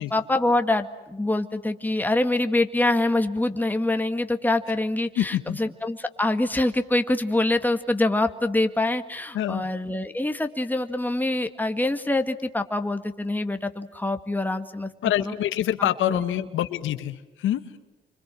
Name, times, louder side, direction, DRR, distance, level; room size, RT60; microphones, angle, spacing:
voice 1, 0.0-14.9 15.2-15.3 15.8-16.2, left 2 dB, 10° left, 7 dB, 1.9 m, -25 dB
voice 2, 5.2-5.6 9.3-9.7 15.0-17.8, left 12 dB, 80° left, 10 dB, 1.6 m, -26 dB
29.0 x 25.5 x 7.7 m, 1.1 s
cardioid pair, 90°, 20 cm